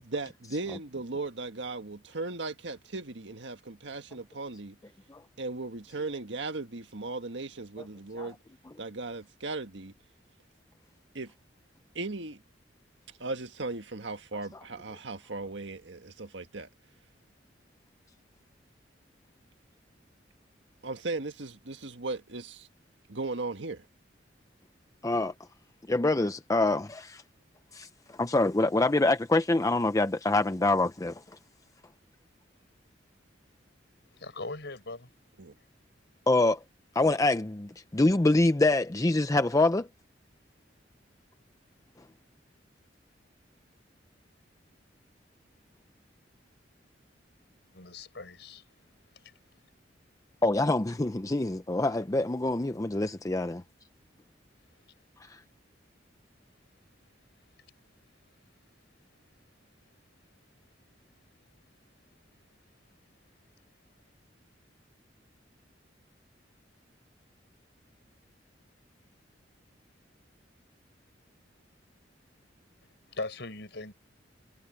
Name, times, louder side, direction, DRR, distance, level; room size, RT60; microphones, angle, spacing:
voice 1, 0.0-4.8 5.4-8.4 8.8-9.9 11.1-11.3 11.9-12.4 13.2-16.7 20.8-22.7 23.1-23.9 35.4-35.5, right 3 dB, 75° right, 1.7 m, -37 dB
voice 2, 25.0-25.3 25.9-27.2 27.7-27.9 28.2-31.2 36.3-36.6 37.0-39.9 50.4-53.6 55.3-55.4, left 2 dB, 20° left, 0.6 m, -25 dB
voice 3, 34.2-35.1 47.7-48.6 49.2-49.3 73.1-73.9, left 2 dB, 65° left, 6.2 m, -39 dB
head